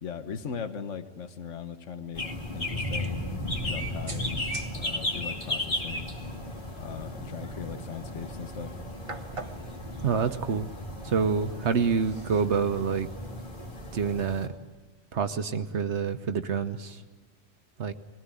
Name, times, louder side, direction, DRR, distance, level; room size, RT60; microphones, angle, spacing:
voice 1, 0.0-2.3 2.5-3.3 3.6-6.1 6.8-8.8, left 7 dB, 80° left, 9 dB, 1.5 m, -39 dB
sound 1, 2.1-14.5, left 1 dB, 40° left, 2.7 m, -35 dB
sound 2, 2.9-14.4, right 3 dB, 30° right, 1.1 m, -48 dB
voice 2, 10.0-10.7 11.0-13.1 13.9-14.5 15.1-17.0 17.8-17.9, right 6 dB, 70° right, 9 dB, 1.2 m, -27 dB
22.5 x 17.0 x 9.8 m, 1.3 s
omnidirectional pair, 1.3 m